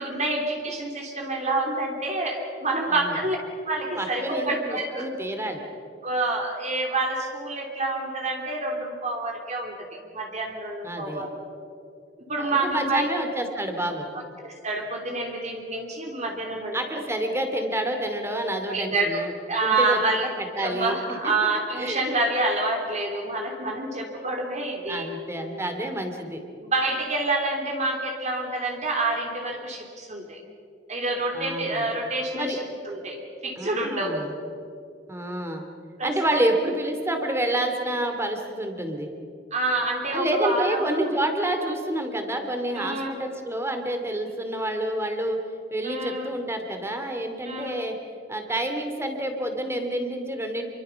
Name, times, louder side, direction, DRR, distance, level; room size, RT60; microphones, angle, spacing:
voice 1, 0.0-3.4 3.7-5.1 6.0-9.7 10.1-11.3 12.3-13.1 14.4-16.8 18.7-20.3 20.6-25.1 26.6-30.4 30.9-34.3 36.0-36.5 39.5-41.1 42.7-43.2 45.8-46.3 47.4-47.8, right 2 dB, 40° right, 1 dB, 3.2 m, -27 dB
voice 2, 4.0-5.6 10.8-11.2 12.4-14.1 16.7-19.3 19.6-20.0 20.4-21.2 21.8-22.0 24.9-26.4 31.3-31.9 32.3-32.6 33.6-34.3 35.1-35.7 36.0-39.1 40.1-45.4 45.7-48.0 48.3-50.6, right 1 dB, 15° right, 5 dB, 2.6 m, -28 dB
27.5 x 23.5 x 5.8 m, 2.5 s
head